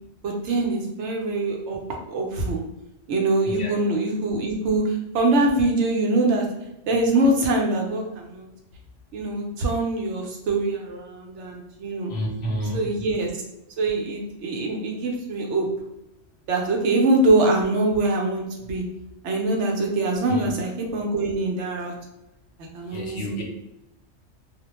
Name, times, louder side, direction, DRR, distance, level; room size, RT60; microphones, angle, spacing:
voice 1, 0.2-2.6 3.1-6.5 6.9-8.5 9.1-12.1 12.7-13.3 13.8-15.7 16.5-18.8 19.2-21.9 22.7-23.4, right 2 dB, 70° right, 1 dB, 0.9 m, -23 dB
voice 2, 12.1-12.8 20.3-20.5 22.9-23.4, equal, 65° left, -2 dB, 0.8 m, -29 dB
2.4 x 2.1 x 2.9 m, 0.90 s
omnidirectional pair, 1.3 m